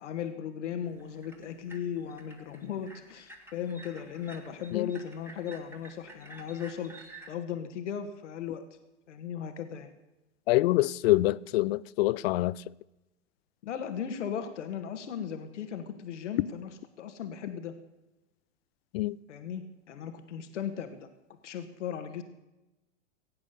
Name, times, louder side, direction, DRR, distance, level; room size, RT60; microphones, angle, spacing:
voice 1, 0.0-6.9 7.3-8.6 9.1-9.9 13.6-16.7 17.0-17.7 19.3-21.1 21.4-22.2, left 8 dB, 75° left, 1.6 m, -37 dB
sound 1, 0.8-7.3, right 2 dB, 5° right, 2.0 m, -51 dB
voice 2, 10.5-12.6 18.9-19.2, left 18 dB, 55° left, 0.5 m, -25 dB
17.0 x 8.8 x 6.8 m
hypercardioid pair, 105°, 36 cm